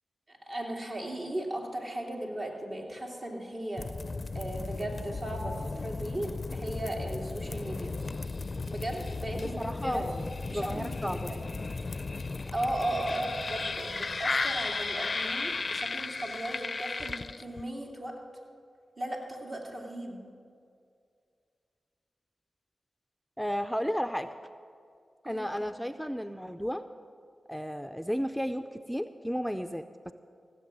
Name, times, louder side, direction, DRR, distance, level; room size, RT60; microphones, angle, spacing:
voice 1, 0.3-3.9 4.3-7.9 8.7-10.1 10.4-11.4 12.5-18.1 19.0-20.2 25.2-25.4, right 1 dB, 55° right, -2 dB, 2.7 m, -36 dB
sound 1, 3.8-17.7, left 3 dB, 50° left, 0.4 m, -35 dB
voice 2, 9.3-10.1 10.5-11.3 23.4-24.3 25.2-26.8 27.5-30.1, equal, ahead, 9 dB, 0.5 m, -33 dB
16.0 x 7.7 x 7.5 m, 2.3 s
cardioid pair, 40°, 0 cm